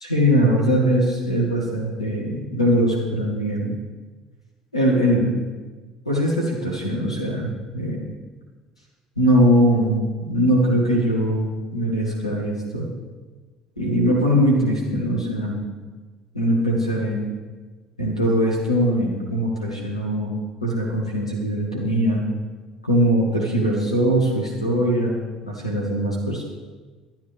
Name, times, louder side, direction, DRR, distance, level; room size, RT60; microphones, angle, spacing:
voice 1, 0.0-3.8 4.7-5.3 6.1-7.5 7.7-8.1 9.2-12.9 13.8-15.6 16.3-17.3 18.0-20.3 20.6-22.2 22.8-26.4, equal, 90° left, -2 dB, 1.8 m, -21 dB
12.0 x 9.1 x 3.4 m, 1.4 s
figure-of-eight pair, 55°, 3 cm